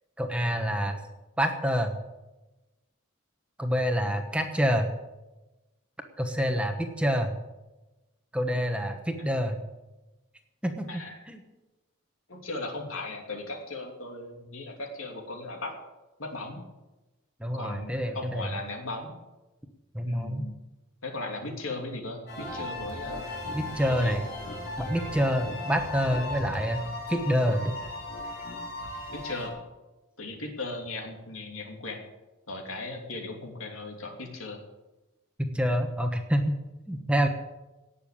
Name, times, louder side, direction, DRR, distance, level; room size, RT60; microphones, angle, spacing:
voice 1, 0.2-1.0 1.4-1.9 3.6-4.9 6.2-7.3 8.3-9.6 10.6-11.0 11.3-11.4 17.4-18.5 19.9-20.4 23.5-24.2 24.8-26.8 27.1-27.7 35.4-36.5 36.9-37.3, equal, 5° right, 4 dB, 1.2 m, -27 dB
voice 2, 10.9-11.2 12.3-15.7 16.2-16.6 17.5-19.1 20.0-20.6 21.0-23.3 23.9-24.2 29.1-29.6 30.2-32.0 32.5-34.6, left 2 dB, 80° left, 2 dB, 3.0 m, -37 dB
sound 1, 22.3-29.5, left 1 dB, 50° left, 4.2 m, -37 dB
18.0 x 6.9 x 8.6 m, 1.1 s
head